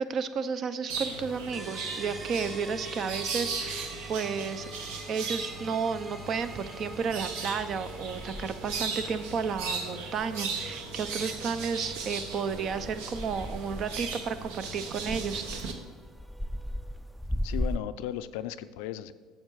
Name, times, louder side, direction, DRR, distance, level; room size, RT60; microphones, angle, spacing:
voice 1, 0.0-4.7 5.1-15.4, right 6 dB, 50° right, 12 dB, 0.6 m, -32 dB
sound 1, 0.9-15.7, right 4 dB, 75° right, 1.0 m, -37 dB
sound 2, 1.5-17.1, right 1 dB, 15° right, 0.9 m, -48 dB
sound 3, 6.3-17.8, equal, ahead, 0.3 m, -39 dB
voice 2, 17.4-19.1, left 12 dB, 75° left, 13 dB, 0.4 m, -36 dB
7.7 x 7.3 x 4.7 m, 1.4 s
hypercardioid pair, 75°, 0 cm